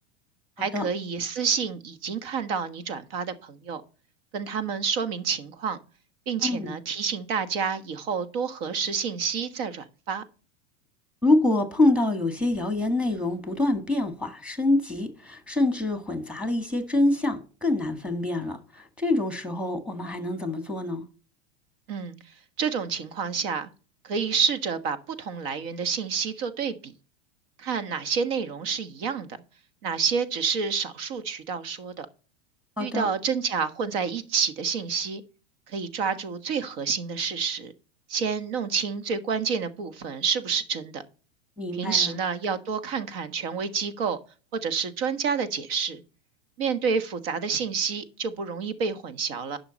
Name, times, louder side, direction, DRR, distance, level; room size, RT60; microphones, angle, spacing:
voice 1, 0.6-3.8 4.3-5.8 6.3-10.2 21.9-22.2 22.6-23.7 24.0-26.9 27.6-29.3 29.8-32.1 32.8-35.2 35.7-37.7 38.1-41.0 41.7-44.2 44.5-46.0 46.6-49.6, right 6 dB, 65° right, 1.5 m, -28 dB
voice 2, 6.4-6.7 11.2-21.0 32.8-33.1 41.6-42.1, left 2 dB, 5° right, 1.7 m, -26 dB
11.0 x 5.9 x 4.1 m
supercardioid pair, 120°, 32 cm